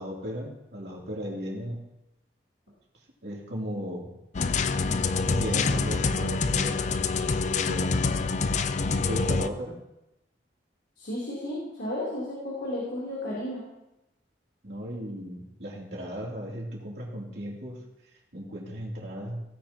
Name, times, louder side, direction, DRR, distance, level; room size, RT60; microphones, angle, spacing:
voice 1, 0.0-1.8 3.2-4.1 5.3-7.0 7.2-7.9 8.9-9.8 14.6-17.8 18.3-19.4, equal, 65° right, -3 dB, 3.1 m, -36 dB
sound 1, 4.3-9.5, left 4 dB, 40° left, 0.4 m, -26 dB
voice 2, 11.0-13.6, left 1 dB, 75° left, -7 dB, 3.4 m, -33 dB
17.0 x 9.1 x 3.0 m, 0.90 s
head